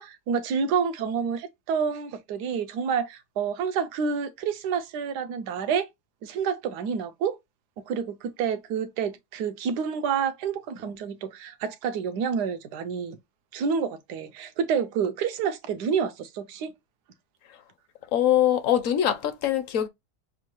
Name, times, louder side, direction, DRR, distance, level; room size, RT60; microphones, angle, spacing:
voice 1, 0.0-5.9 6.2-7.4 7.9-13.2 13.5-16.7, right 6 dB, 85° right, 1.2 m, -28 dB
voice 2, 18.1-19.9, left 11 dB, 60° left, 1.0 m, -23 dB
6.3 x 2.3 x 3.0 m
omnidirectional pair, 1.7 m